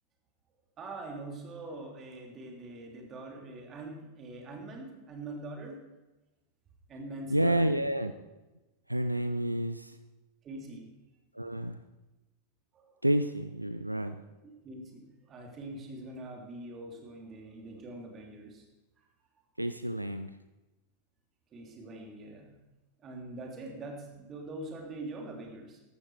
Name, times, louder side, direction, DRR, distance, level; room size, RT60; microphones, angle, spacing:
voice 1, 0.8-5.8 6.9-7.7 10.4-10.9 12.7-12.9 14.4-18.6 19.0-19.1 21.5-22.5 23.0-25.8, right 2 dB, 25° right, 1 dB, 3.2 m, -43 dB
voice 2, 7.3-8.1 8.9-10.0 11.4-11.8 13.0-14.2 19.6-20.3, right 1 dB, 90° right, 10 dB, 0.5 m, -29 dB
15.0 x 12.0 x 4.6 m, 1.1 s
figure-of-eight pair, 90°, 0 cm